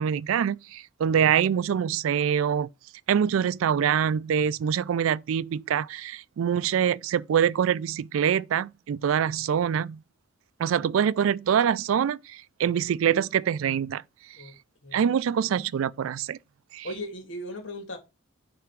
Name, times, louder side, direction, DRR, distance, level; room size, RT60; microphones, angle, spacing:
voice 1, 0.0-2.7 3.1-10.0 10.6-14.0 14.9-16.4 16.7-16.9, right 8 dB, 90° right, 0.3 m, -25 dB
voice 2, 14.8-15.3 16.8-18.0, left 1 dB, 75° left, 2.1 m, -37 dB
9.4 x 3.4 x 4.5 m
head